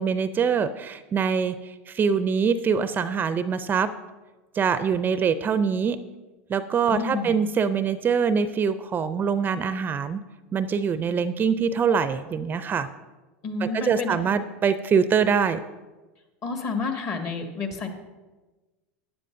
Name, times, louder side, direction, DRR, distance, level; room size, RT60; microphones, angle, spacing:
voice 1, 0.0-3.9 4.5-6.0 6.5-10.2 10.5-12.9 13.6-15.6, right 6 dB, 25° right, 13 dB, 0.4 m, -24 dB
voice 2, 6.9-7.4 13.4-14.2 16.4-17.9, left 4 dB, 45° left, 4 dB, 1.8 m, -29 dB
15.0 x 9.7 x 2.6 m, 1.2 s
hypercardioid pair, 90°, 7 cm